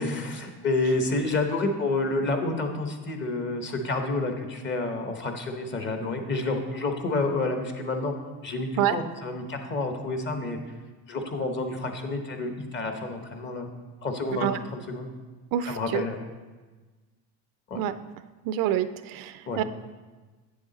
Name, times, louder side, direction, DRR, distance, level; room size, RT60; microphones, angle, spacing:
voice 1, 0.0-8.1 8.4-10.6 11.1-13.7 14.0-15.1 15.7-16.3 17.7-17.8 19.5-19.6, left 2 dB, 30° left, 5 dB, 1.0 m, -29 dB
voice 2, 15.5-16.0 17.8-17.9 18.5-19.6, right 11 dB, 65° right, 12 dB, 0.5 m, -26 dB
8.1 x 7.2 x 4.0 m, 1.3 s
cardioid pair, 115°, 36 cm